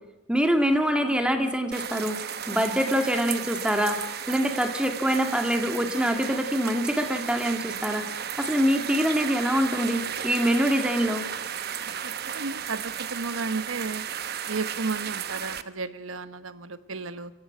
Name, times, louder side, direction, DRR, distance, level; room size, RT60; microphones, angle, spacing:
voice 1, 0.3-2.2 2.5-8.1 8.4-11.3, equal, 5° right, 5 dB, 2.2 m, -25 dB
sound 1, 1.7-15.6, right 8 dB, 50° right, 1.0 m, -34 dB
voice 2, 12.3-14.0 14.5-17.3, right 3 dB, 85° right, 12 dB, 1.2 m, -33 dB
27.5 x 16.0 x 9.5 m, 1.0 s
head